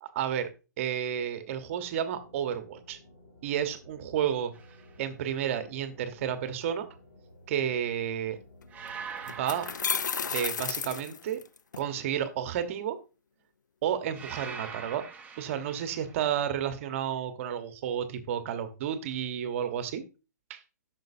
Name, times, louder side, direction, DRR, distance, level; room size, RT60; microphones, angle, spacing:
voice 1, 0.1-0.5 0.8-3.0 3.4-4.5 5.0-6.9 7.5-8.4 9.3-9.7 10.3-11.4 11.8-13.0 13.8-15.0 15.4-20.0 20.5-20.6, right 9 dB, 45° right, 9 dB, 1.1 m, -31 dB
sound 1, 2.2-9.9, left 1 dB, 55° left, 2.5 m, -55 dB
sound 2, 4.5-4.9 8.7-10.9 14.1-16.2, right 6 dB, 15° right, 1.0 m, -43 dB
sound 3, 8.6-8.7 9.3-11.8, left 6 dB, 85° left, 0.4 m, -32 dB
9.2 x 6.2 x 2.6 m, 0.31 s
hypercardioid pair, 125°, 10 cm